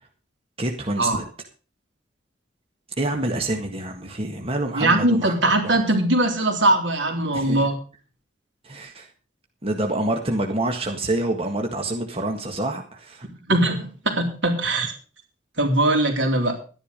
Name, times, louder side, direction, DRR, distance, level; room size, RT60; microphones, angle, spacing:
voice 1, 0.6-1.2 3.0-5.8 7.3-7.7 8.6-9.1 9.6-13.3, right 1 dB, 30° right, 3 dB, 1.7 m, -27 dB
voice 2, 4.7-7.8 13.5-14.9 15.6-16.6, right 2 dB, 80° right, 3 dB, 3.7 m, -21 dB
12.5 x 10.5 x 5.3 m, 0.37 s
head